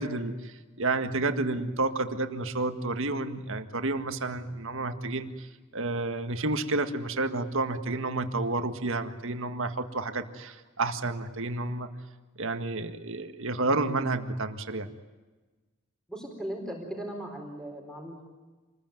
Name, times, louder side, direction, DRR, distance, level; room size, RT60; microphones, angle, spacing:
voice 1, 0.0-5.5 5.7-11.9 12.4-14.9, right 2 dB, 60° right, 7 dB, 1.8 m, -30 dB
voice 2, 16.1-18.3, right 1 dB, 5° left, 2 dB, 4.2 m, -38 dB
27.5 x 21.0 x 9.4 m, 1.3 s
head